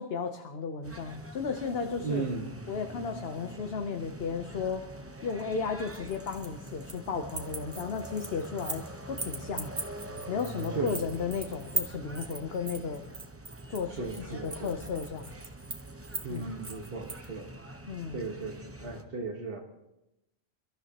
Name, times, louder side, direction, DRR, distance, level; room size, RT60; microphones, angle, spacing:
voice 1, 0.0-2.3 2.7-4.9 5.2-9.8 10.3-13.0 13.7-15.3 16.3-16.5 17.9-18.2, left 5 dB, 65° left, 5 dB, 1.1 m, -34 dB
sound 1, 0.8-19.0, right 1 dB, 15° right, 0.8 m, -45 dB
voice 2, 2.0-2.5 10.7-11.1 13.9-14.7 16.2-17.5 18.1-19.6, right 4 dB, 60° right, 0 dB, 1.6 m, -36 dB
sound 2, 5.9-7.1 7.3-8.9 9.2-17.3, right 3 dB, 30° right, 1.5 m, -39 dB
28.5 x 13.0 x 3.0 m, 0.91 s
omnidirectional pair, 1.1 m